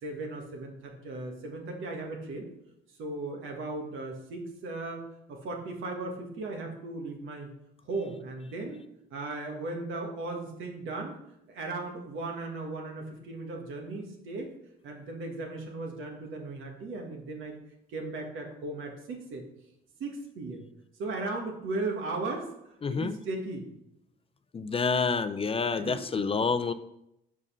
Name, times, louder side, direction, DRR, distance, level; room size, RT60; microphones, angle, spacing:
voice 1, 0.0-2.5 3.0-7.5 7.8-8.8 9.1-11.2 11.5-14.5 14.8-17.6 17.9-19.4 20.0-20.6 21.0-23.8 25.7-26.3, right 2 dB, 80° right, 2 dB, 1.6 m, -37 dB
voice 2, 22.8-23.2 24.5-26.7, left 5 dB, 30° left, 11 dB, 0.4 m, -28 dB
5.4 x 5.0 x 5.6 m, 0.81 s
cardioid pair, 90°, 20 cm